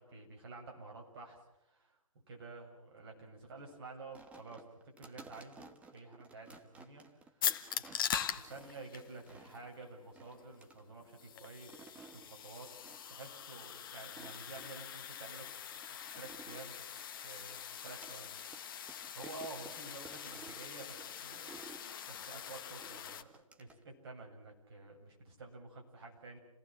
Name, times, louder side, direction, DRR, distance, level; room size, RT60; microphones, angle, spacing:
voice 1, 0.0-2.0 2.3-7.0 7.3-7.4 7.7-11.8 12.1-12.7 13.1-15.5 15.9-16.8 17.2-17.6 17.8-21.8 22.1-23.3 23.6-26.4, right 3 dB, 45° right, 1 dB, 7.8 m, -51 dB
sound 1, 4.1-9.7 10.1-10.8 11.5-12.3 12.8-13.1 13.4-13.5 14.0-15.0 15.5-18.2 18.5-18.6 18.9-21.9 22.8-23.8, right 4 dB, 5° right, 1.4 m, -56 dB
sound 2, 7.4-23.2, left 9 dB, 40° left, 1.5 m, -43 dB
30.0 x 18.5 x 7.7 m, 0.86 s
figure-of-eight pair, 140°, 17 cm